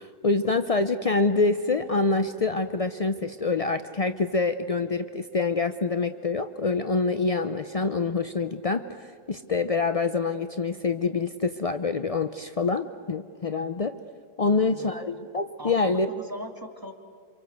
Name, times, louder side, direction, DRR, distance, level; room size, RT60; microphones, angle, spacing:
voice 1, 0.0-13.9 14.4-16.1, left 3 dB, 55° left, 9 dB, 0.4 m, -26 dB
voice 2, 14.5-14.9 15.6-16.9, equal, 15° right, 3 dB, 2.5 m, -40 dB
28.5 x 26.0 x 8.0 m, 2.2 s
omnidirectional pair, 1.7 m